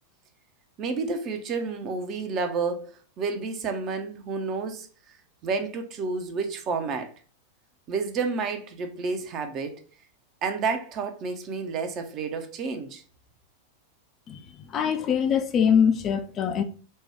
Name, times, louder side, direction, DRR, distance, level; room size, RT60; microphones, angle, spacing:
voice 1, 0.8-4.9 5.4-7.1 7.9-9.8 10.4-13.0, right 4 dB, 35° right, 0.6 m, -30 dB
voice 2, 14.3-16.6, left 7 dB, 30° left, 0.4 m, -23 dB
4.2 x 2.2 x 3.4 m
figure-of-eight pair, 90°, 0 cm